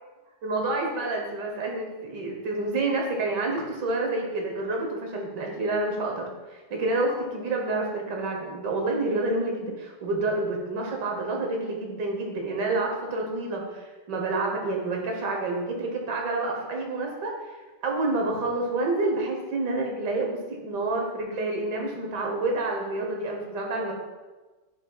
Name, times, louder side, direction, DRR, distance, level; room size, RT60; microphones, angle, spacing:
voice 1, 0.4-17.3 17.8-23.9, right 2 dB, 80° right, 1 dB, 1.8 m, -28 dB
9.8 x 5.0 x 2.3 m, 1.2 s
omnidirectional pair, 1.8 m